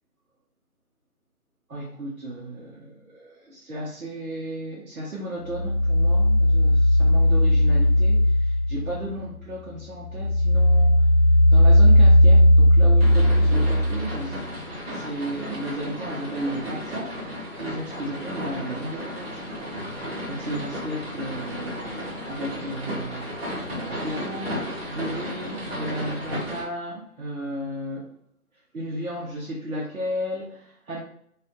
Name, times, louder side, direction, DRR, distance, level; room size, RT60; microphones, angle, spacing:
voice 1, 1.7-11.1 11.5-14.4 14.9-19.5 20.3-23.4 23.7-24.6 24.9-28.1 28.7-31.0, right 1 dB, 65° right, -6 dB, 1.0 m, -34 dB
sound 1, 5.5-9.3 9.7-14.3, left 1 dB, ahead, 0.5 m, -17 dB
sound 2, 13.0-26.6, equal, 45° right, 1.0 m, -34 dB
2.5 x 2.2 x 2.6 m, 0.66 s
figure-of-eight pair, 165°, 45 cm